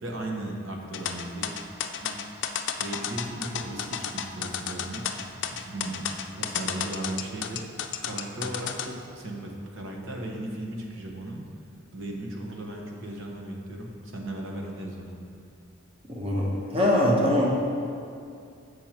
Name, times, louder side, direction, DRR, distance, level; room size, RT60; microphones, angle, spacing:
voice 1, 0.0-1.5 2.0-2.5 2.8-5.0 5.6-7.6 8.0-11.4 11.9-15.2, right 1 dB, 65° right, 0 dB, 1.1 m, -36 dB
sound 1, 0.9-8.9, left 8 dB, 60° left, 0.4 m, -32 dB
voice 2, 16.1-17.5, left 1 dB, 30° right, -4 dB, 1.1 m, -22 dB
7.2 x 6.4 x 4.5 m, 2.5 s
head